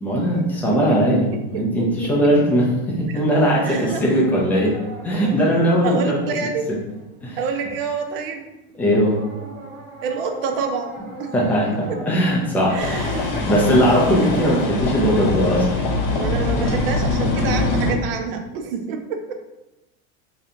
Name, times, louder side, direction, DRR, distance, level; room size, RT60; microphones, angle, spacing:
voice 1, 0.0-1.2 1.5-4.7 5.0-6.3 6.7-6.8 7.2-7.4 8.8-9.2 11.3-13.1 13.5-15.7, equal, 5° left, -4 dB, 0.4 m, -19 dB
voice 2, 0.7-1.2 2.0-2.1 3.6-4.0 4.6-4.8 5.8-6.7 7.4-8.4 10.0-10.9 11.2-11.3 12.7-14.1 16.1-19.3, right 5 dB, 55° right, 5 dB, 0.6 m, -28 dB
sound 1, 3.6-7.5 8.1-8.4 8.9-17.5, right 3 dB, 85° right, 1.5 m, -40 dB
sound 2, 7.8-7.9 8.3-8.5 8.7-14.7, left 2 dB, 25° right, 0.8 m, -39 dB
sound 3, 12.8-17.9, left 2 dB, 35° left, 0.7 m, -23 dB
3.3 x 2.8 x 3.8 m, 1.0 s
supercardioid pair, 175°, 33 cm